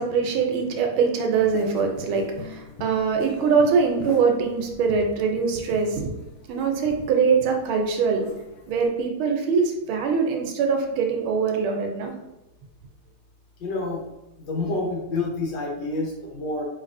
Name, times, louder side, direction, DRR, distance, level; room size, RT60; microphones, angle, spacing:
voice 1, 0.0-6.1 6.5-8.3 8.7-12.1, right 5 dB, 75° right, 3 dB, 1.4 m, -23 dB
sound 1, 1.3-8.9, left 3 dB, 80° left, 1.5 m, -41 dB
voice 2, 13.6-14.0 14.5-16.6, left 2 dB, 65° left, -2 dB, 1.5 m, -28 dB
4.7 x 3.2 x 2.5 m, 0.94 s
omnidirectional pair, 2.3 m